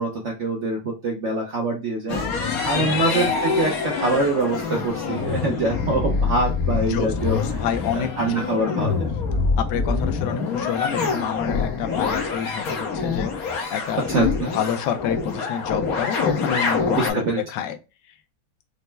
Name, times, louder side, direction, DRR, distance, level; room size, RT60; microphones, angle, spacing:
voice 1, 0.0-2.2 2.6-7.4 7.9-9.1 14.1-14.5 17.0-17.4, right 2 dB, 60° right, 0 dB, 0.7 m, -24 dB
sound 1, 2.1-17.1, left 5 dB, 55° left, 1.2 m, -25 dB
voice 2, 6.9-8.3 8.7-8.8 9.6-14.0 14.5-17.2 17.5-17.8, left 8 dB, 70° left, 7 dB, 1.1 m, -28 dB
5.3 x 2.1 x 3.3 m, 0.29 s
omnidirectional pair, 2.1 m